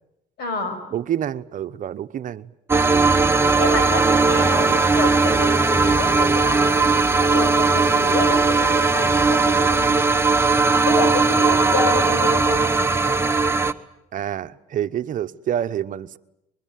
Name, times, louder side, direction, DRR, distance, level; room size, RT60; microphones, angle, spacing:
voice 1, 0.4-0.8 3.5-6.9 7.2-10.2 10.9-12.8, left 3 dB, 70° left, 6.1 m, -29 dB
voice 2, 0.9-2.5 11.4-11.7 14.1-16.2, right 10 dB, 50° right, 0.9 m, -28 dB
sound 1, 2.7-13.7, right 4 dB, 15° right, 1.1 m, -18 dB
24.0 x 21.5 x 9.2 m
cardioid pair, 110°, 17 cm